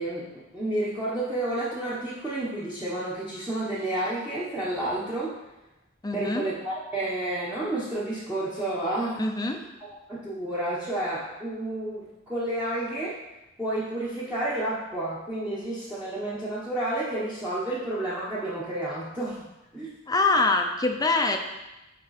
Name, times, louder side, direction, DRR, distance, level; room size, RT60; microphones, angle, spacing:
voice 1, 0.0-5.3 6.1-9.2 9.8-13.2 13.6-19.5 19.7-19.9, right 1 dB, 5° right, -10 dB, 1.1 m, -30 dB
voice 2, 6.0-6.5 9.2-9.6 20.1-21.4, left 3 dB, 20° left, 4 dB, 0.6 m, -24 dB
9.5 x 3.7 x 4.1 m, 0.99 s
head